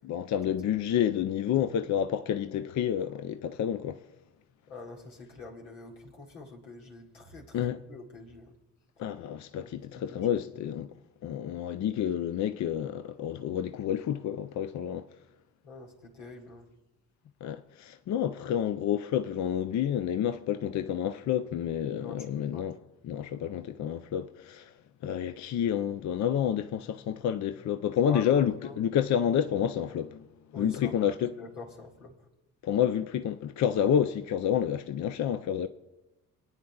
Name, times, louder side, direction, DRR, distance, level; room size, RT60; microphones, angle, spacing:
voice 1, 0.0-4.0 7.5-7.8 9.0-10.9 11.2-15.1 17.4-22.8 23.0-24.7 25.0-30.3 30.6-31.3 32.6-35.7, left 9 dB, 40° left, 0.6 m, -29 dB
voice 2, 4.7-8.5 9.6-10.4 15.6-16.7 22.0-22.3 22.5-22.7 28.1-28.8 30.5-32.3, left 2 dB, 80° left, 2.0 m, -45 dB
27.5 x 9.4 x 2.4 m
figure-of-eight pair, 45°, 43 cm